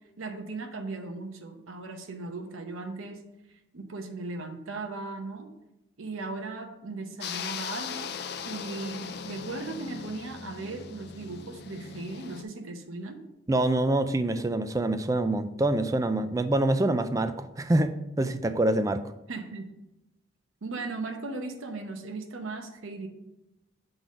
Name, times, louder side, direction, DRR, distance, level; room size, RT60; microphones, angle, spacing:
voice 1, 0.2-3.2 3.7-5.5 6.0-8.1 8.4-13.2 19.3-19.7 20.6-23.1, right 3 dB, 85° right, 4 dB, 0.8 m, -37 dB
sound 1, 7.2-12.4, left 6 dB, 55° left, 0.4 m, -39 dB
voice 2, 13.5-19.0, right 1 dB, 15° right, 10 dB, 0.3 m, -26 dB
7.4 x 3.9 x 5.0 m, 0.92 s
head